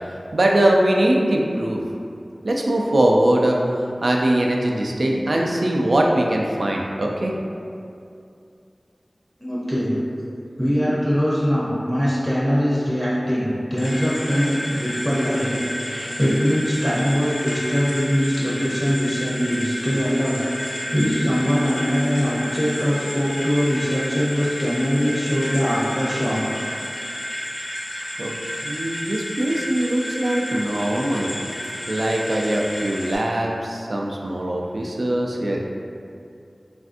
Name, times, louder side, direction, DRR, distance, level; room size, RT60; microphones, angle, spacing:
voice 1, 0.3-1.8 2.4-3.6 4.0-7.3 28.2-28.3 28.6-31.3 31.9-35.6, right 1 dB, 80° right, -1 dB, 0.3 m, -21 dB
voice 2, 9.4-9.9 10.6-26.4, equal, ahead, -8 dB, 0.6 m, -22 dB
sound 1, 13.8-33.2, equal, 85° left, 0.6 m, -31 dB
3.3 x 2.5 x 2.4 m, 2.5 s
wide cardioid pair, 60°, 0 cm